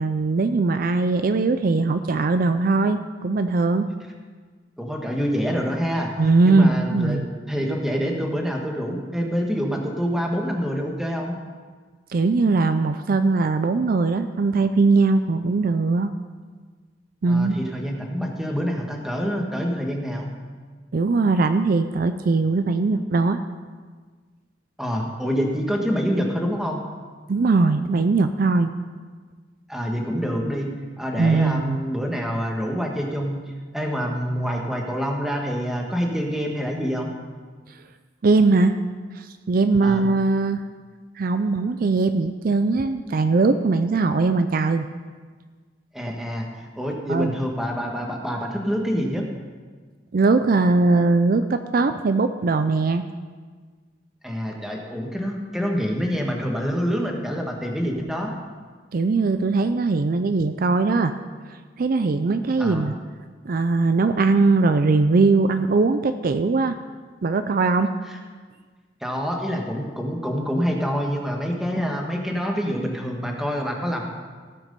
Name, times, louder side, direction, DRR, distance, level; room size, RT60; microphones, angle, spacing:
voice 1, 0.0-3.9 6.2-7.3 12.1-16.1 17.2-17.6 20.9-23.4 27.3-28.7 31.2-31.8 38.2-38.8 39.1-40.6 41.2-44.9 47.1-47.3 50.1-53.0 58.9-61.1 61.8-62.9 63.4-66.8 67.2-67.9, right 3 dB, 55° right, 9 dB, 0.4 m, -20 dB
voice 2, 4.8-6.1 6.4-7.2 7.5-11.4 17.3-20.3 24.8-26.8 29.7-30.7 31.0-33.4 33.7-37.1 39.8-40.1 45.9-46.5 46.8-49.2 54.2-58.3 62.6-62.9 68.1-68.2 69.0-74.1, equal, ahead, 0 dB, 1.4 m, -26 dB
16.5 x 6.0 x 5.3 m, 1.5 s
head